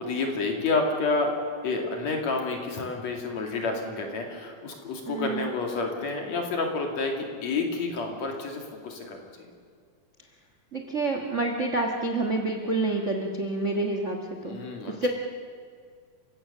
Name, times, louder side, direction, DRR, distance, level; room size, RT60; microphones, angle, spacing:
voice 1, 0.0-1.3 1.6-9.5 14.4-15.1, left 3 dB, 55° left, 2 dB, 3.5 m, -29 dB
voice 2, 5.1-5.5 10.7-14.6 14.9-15.1, right 2 dB, 45° right, 3 dB, 0.9 m, -28 dB
29.5 x 16.5 x 6.8 m, 2.1 s
omnidirectional pair, 4.0 m